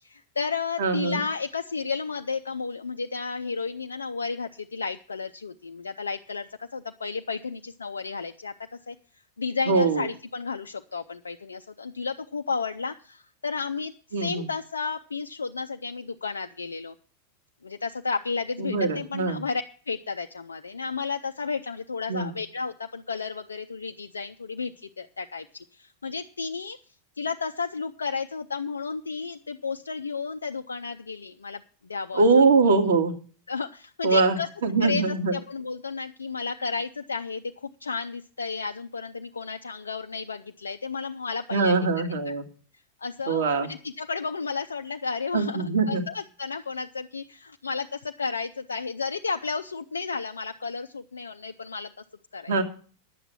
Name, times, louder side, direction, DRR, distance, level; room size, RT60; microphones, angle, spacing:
voice 1, 0.0-8.5 8.9-9.0 9.4-16.9 17.6-26.8 27.2-32.2 33.5-34.5 34.8-42.3 43.0-51.9 52.3-52.5, left 5 dB, 75° left, 5 dB, 0.5 m, -32 dB
voice 2, 0.8-1.2 9.7-10.1 14.1-14.5 18.6-19.4 22.1-22.3 32.1-33.1 34.0-34.4 34.6-35.3 41.5-42.4 43.3-43.7 45.3-46.0 52.5-52.6, right 4 dB, 60° right, 3 dB, 2.0 m, -22 dB
11.0 x 8.0 x 7.2 m, 0.41 s
figure-of-eight pair, 90°, 0 cm